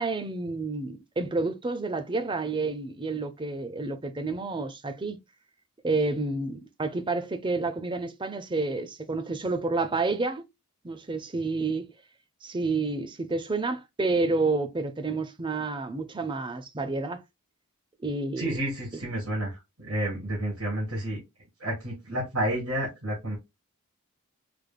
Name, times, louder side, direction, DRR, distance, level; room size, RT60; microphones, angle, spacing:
voice 1, 0.0-5.2 5.8-10.4 10.8-11.9 12.4-17.2 18.0-18.6, right 3 dB, 20° right, 0.5 m, -29 dB
voice 2, 18.4-21.2 21.6-23.4, right 1 dB, 70° right, 2.8 m, -30 dB
4.9 x 3.3 x 2.3 m
head